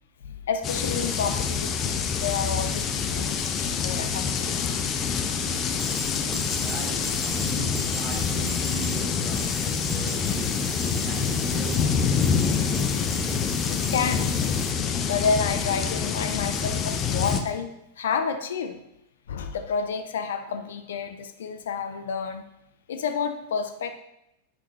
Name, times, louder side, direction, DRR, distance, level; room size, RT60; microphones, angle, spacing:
voice 1, 0.2-4.6 13.7-14.3 15.0-17.7 18.0-18.8 19.3-22.4 22.9-23.9, left 6 dB, 60° left, 8 dB, 0.6 m, -30 dB
sound 1, 0.6-17.4, left 6 dB, 30° left, 0.8 m, -26 dB
voice 2, 5.3-6.0 6.6-12.8, right 6 dB, 30° right, 1 dB, 2.0 m, -40 dB
sound 2, 5.8-14.7, right 3 dB, 10° right, 1.0 m, -39 dB
11.0 x 8.0 x 3.1 m, 0.86 s
figure-of-eight pair, 90°, 0 cm